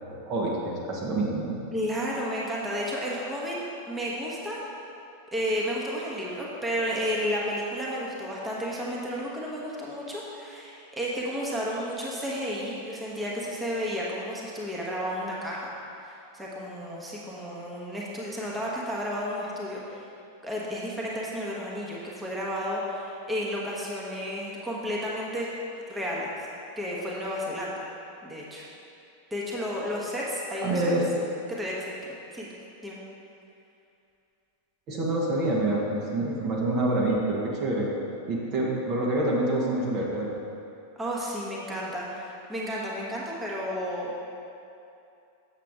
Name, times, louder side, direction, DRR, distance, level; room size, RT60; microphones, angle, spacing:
voice 1, 0.0-1.6 30.6-31.1 34.9-37.9 38.3-40.3, right 2 dB, 40° right, -3 dB, 1.2 m, -27 dB
voice 2, 1.7-3.5 3.9-4.6 5.3-15.7 16.0-20.1 20.4-25.5 25.9-26.5 26.8-27.7 28.2-28.7 29.3-30.9 31.6-31.9 32.3-32.5 32.8-33.0 41.0-44.2, equal, 10° right, -5 dB, 1.3 m, -32 dB
7.6 x 7.3 x 3.6 m, 2.7 s
figure-of-eight pair, 90°, 0 cm